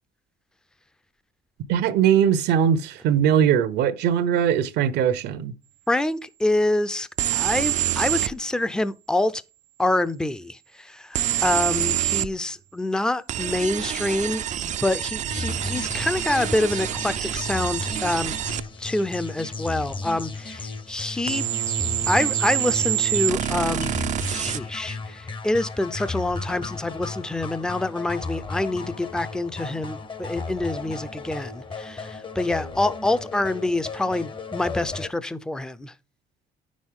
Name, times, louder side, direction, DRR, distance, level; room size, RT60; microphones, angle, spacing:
voice 1, 1.7-5.5, right 9 dB, 80° right, 0.9 m, -20 dB
voice 2, 5.9-7.1 7.3-9.4 9.8-14.4 14.8-18.4 18.8-21.5 22.1-23.9 24.2-35.9, left 2 dB, 5° left, 0.5 m, -26 dB
sound 1, 7.2-8.3 11.2-12.3 13.3-18.7 21.3-24.6, right 12 dB, 45° right, 0.4 m, -26 dB
sound 2, 15.3-35.1, left 3 dB, 30° left, 0.9 m, -35 dB
9.2 x 6.2 x 3.7 m
cardioid pair, 110°, 17 cm